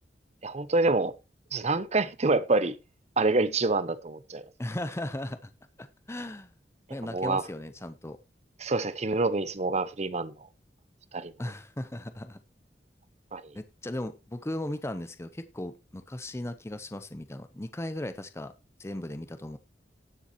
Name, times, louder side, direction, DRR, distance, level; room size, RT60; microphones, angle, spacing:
voice 1, 0.4-1.1 1.5-2.8 3.2-4.4 7.1-7.4 8.6-10.3 11.1-11.3 13.3-13.4, right 3 dB, 40° right, 0.8 m, -26 dB
voice 2, 4.6-5.5 5.8-6.5 6.9-8.2 11.4-12.4 13.5-18.5 18.8-19.6, left 1 dB, 15° left, 0.7 m, -37 dB
18.5 x 7.0 x 2.9 m
head